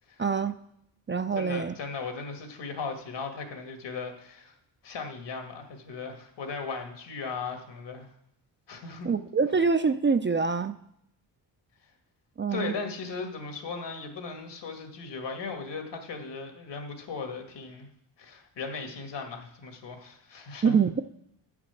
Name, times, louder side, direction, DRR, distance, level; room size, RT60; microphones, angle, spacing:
voice 1, 0.2-0.6 1.1-1.7 9.0-10.8 12.4-12.7 20.6-21.0, right 5 dB, 25° right, 10 dB, 0.5 m, -25 dB
voice 2, 1.4-4.6 4.8-8.1 8.7-9.1 12.5-17.9 18.2-20.8, left 4 dB, 70° left, 4 dB, 2.0 m, -37 dB
9.8 x 6.0 x 6.8 m, 0.75 s
cardioid pair, 80°, 44 cm